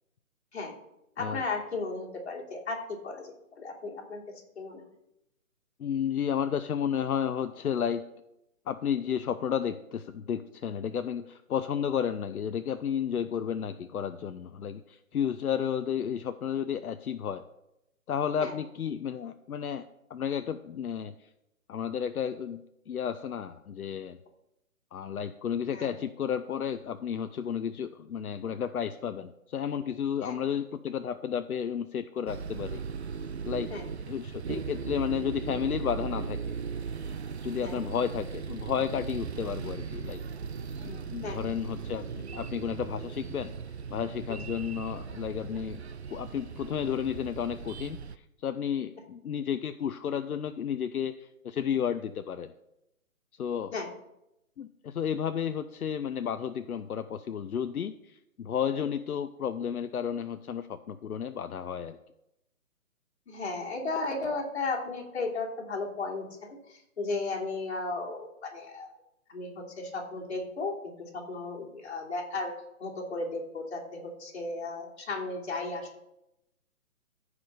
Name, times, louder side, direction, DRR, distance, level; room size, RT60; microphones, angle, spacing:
voice 1, 1.2-4.2 4.5-4.8 18.4-18.6 25.7-25.9 30.2-30.3 33.7-33.8 37.6-37.8 41.2-41.5 53.7-53.9 63.3-68.9 69.3-72.5 72.8-76.0, left 3 dB, 50° left, -2 dB, 3.1 m, -35 dB
voice 2, 5.8-8.0 8.7-17.4 18.1-19.8 20.1-21.3 21.7-22.6 22.9-24.2 24.9-32.8 33.5-33.7 34.1-36.4 37.4-40.2 40.8-43.5 43.9-45.8 46.1-52.5 53.4-53.7 54.6-62.0, left 8 dB, 80° left, 9 dB, 0.8 m, -32 dB
sound 1, 32.3-48.2, right 6 dB, 50° right, 0.4 m, -38 dB
15.0 x 4.9 x 5.5 m, 0.86 s
hypercardioid pair, 170°, 43 cm